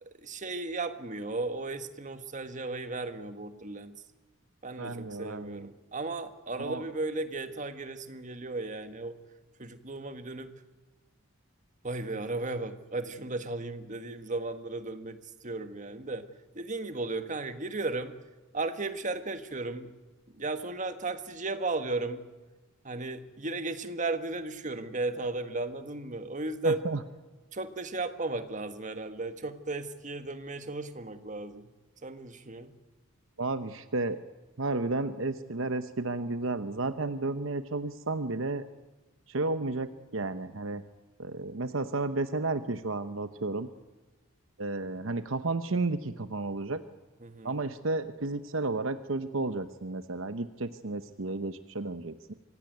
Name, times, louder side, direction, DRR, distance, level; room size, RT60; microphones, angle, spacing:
voice 1, 0.0-4.0 4.6-9.1 9.6-10.5 11.8-15.2 15.4-16.3 16.5-18.1 18.5-19.9 20.3-22.2 22.8-26.8 27.5-31.7 32.0-32.7 47.2-47.5, right 3 dB, 35° right, 9 dB, 1.6 m, -35 dB
voice 2, 4.8-5.7 6.6-6.8 26.6-27.0 33.4-34.2 34.6-38.6 39.3-40.8 41.2-43.7 44.6-46.8 47.4-52.3, right 3 dB, 65° right, 11 dB, 1.0 m, -32 dB
25.5 x 17.0 x 9.3 m, 1.2 s
head